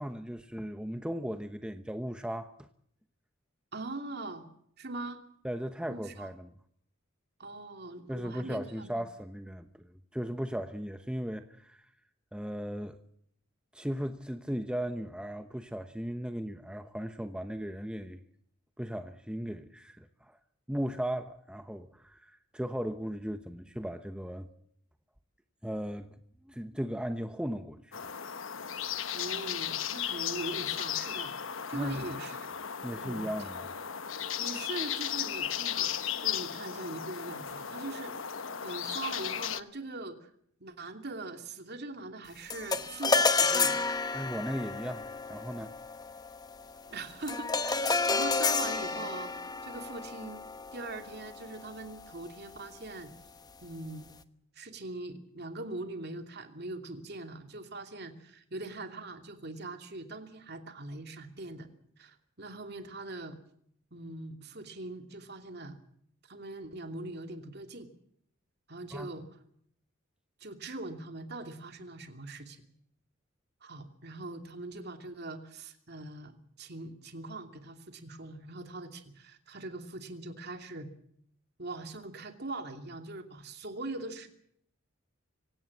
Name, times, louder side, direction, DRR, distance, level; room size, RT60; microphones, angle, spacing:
voice 1, 0.0-2.7 5.4-6.5 8.1-11.9 12.3-13.0 13.7-18.2 18.8-20.4 20.7-24.5 25.6-26.2 26.4-28.2 31.7-32.0 32.8-33.7 44.1-45.7 68.9-69.1, equal, 5° right, 1.0 m, -37 dB
voice 2, 3.7-4.4 4.8-5.2 5.9-6.3 7.4-8.9 29.1-31.3 31.7-32.5 33.0-33.3 34.4-35.9 36.2-40.3 40.6-43.7 46.9-49.3 49.6-50.4 50.7-53.1 53.6-54.1 54.6-61.7 62.0-63.4 63.9-65.8 66.3-67.9 68.7-69.3 70.4-72.6 73.6-80.9 81.6-84.3, right 2 dB, 50° right, 2.8 m, -41 dB
sound 1, 27.9-39.6, left 9 dB, 70° left, 1.1 m, -35 dB
sound 2, 42.5-52.0, left 4 dB, 20° left, 1.0 m, -31 dB
25.0 x 17.5 x 7.2 m
head